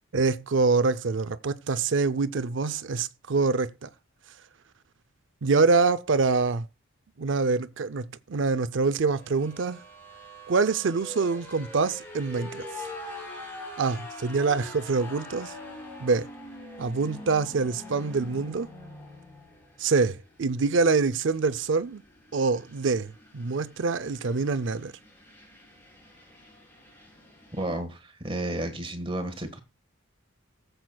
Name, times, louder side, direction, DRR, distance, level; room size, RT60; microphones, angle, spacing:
voice 1, 0.1-3.9 5.4-6.7 7.2-9.8 10.5-12.7 13.8-15.5 16.0-16.3 16.8-18.7 19.8-22.0 22.3-24.9, right 4 dB, 65° right, 0.5 m, -25 dB
sound 1, 9.1-27.8, left 1 dB, 10° left, 7.7 m, -44 dB
voice 2, 27.5-29.6, right 1 dB, 25° right, 1.5 m, -32 dB
20.0 x 7.8 x 2.3 m
head